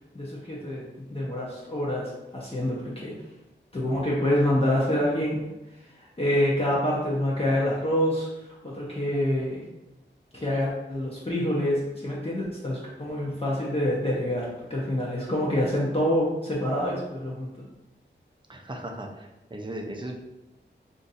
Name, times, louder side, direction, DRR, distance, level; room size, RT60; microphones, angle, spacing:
voice 1, 0.1-3.1 3.7-5.5 6.0-8.3 8.6-9.6 10.3-17.7, left 1 dB, 30° left, -6 dB, 0.7 m, -27 dB
voice 2, 18.5-20.2, right 1 dB, 25° right, 2 dB, 0.5 m, -37 dB
2.5 x 2.5 x 4.0 m, 0.98 s
wide cardioid pair, 70°, 20 cm